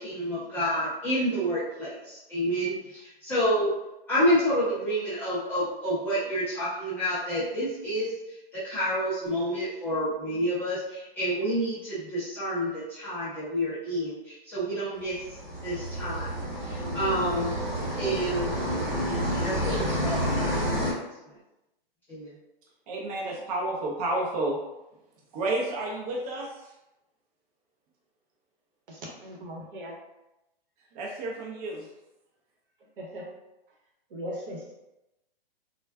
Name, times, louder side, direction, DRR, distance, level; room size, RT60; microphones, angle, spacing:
voice 1, 0.0-3.7 4.1-15.2 15.6-16.3 16.6-17.6 18.0-18.5 19.4-20.6 20.9-21.0 22.1-22.3, equal, 5° left, -12 dB, 0.3 m, -29 dB
sound 1, 15.1-20.9, equal, 25° right, 1.1 m, -29 dB
voice 2, 22.9-24.6 25.3-26.7 30.9-31.9, right 2 dB, 40° right, -2 dB, 0.6 m, -30 dB
voice 3, 28.9-29.9 33.0-33.3 34.1-34.8, equal, 65° right, -1 dB, 1.0 m, -39 dB
3.4 x 2.2 x 2.2 m, 0.95 s
hypercardioid pair, 145°, 30 cm